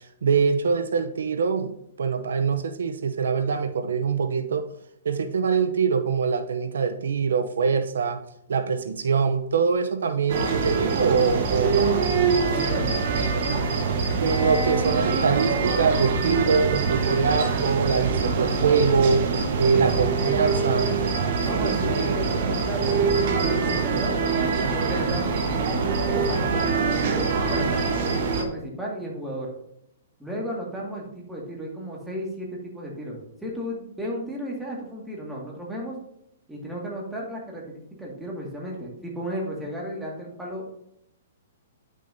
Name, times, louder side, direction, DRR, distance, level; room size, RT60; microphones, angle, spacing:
voice 1, 0.2-1.7 2.0-4.6 5.0-8.2 8.5-11.9 14.2-19.2 19.6-20.9, right 5 dB, 85° right, 8 dB, 0.7 m, -23 dB
sound 1, 10.3-28.4, right 4 dB, 50° right, 1.2 m, -24 dB
voice 2, 12.5-13.0 16.2-16.4 19.7-20.1 21.4-24.2 24.7-27.8 28.3-29.5 30.2-36.0 36.5-40.8, equal, 5° right, -3 dB, 2.0 m, -34 dB
10.0 x 6.3 x 2.7 m, 0.76 s
hypercardioid pair, 155°, 0 cm